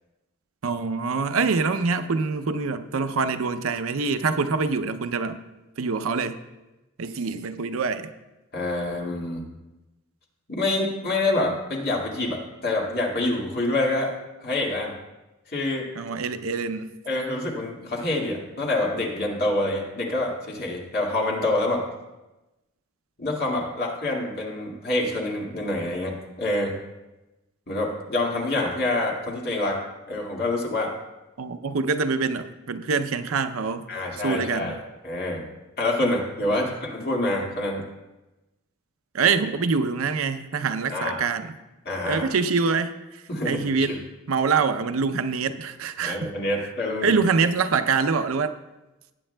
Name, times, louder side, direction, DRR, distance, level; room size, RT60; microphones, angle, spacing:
voice 1, 0.6-5.4 5.8-6.4 7.0-8.1 16.0-17.0 31.4-33.8 34.2-34.8 36.6-36.7 39.1-41.5 42.1-44.0 44.3-46.3 47.0-48.6, right 5 dB, 70° right, 10 dB, 0.6 m, -25 dB
voice 2, 8.5-9.4 10.5-14.1 14.4-14.9 15.5-15.9 17.1-21.8 23.2-26.7 27.7-30.9 33.9-34.8 35.0-35.4 35.8-37.8 40.9-41.2 41.9-42.3 43.3-44.0 46.0-47.1, left 2 dB, 50° left, -1 dB, 2.0 m, -26 dB
19.0 x 8.8 x 2.2 m, 1.0 s
head